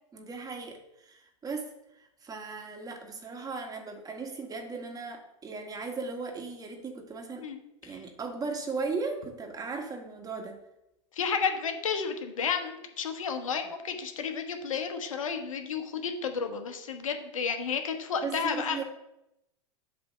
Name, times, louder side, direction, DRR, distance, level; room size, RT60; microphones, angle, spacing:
voice 1, 0.1-1.7 2.2-7.5 7.8-10.6 18.2-18.8, right 4 dB, 20° right, 3 dB, 1.5 m, -37 dB
voice 2, 11.2-18.8, left 6 dB, 85° left, 6 dB, 1.1 m, -32 dB
8.2 x 3.4 x 6.4 m, 0.86 s
hypercardioid pair, 100°, 17 cm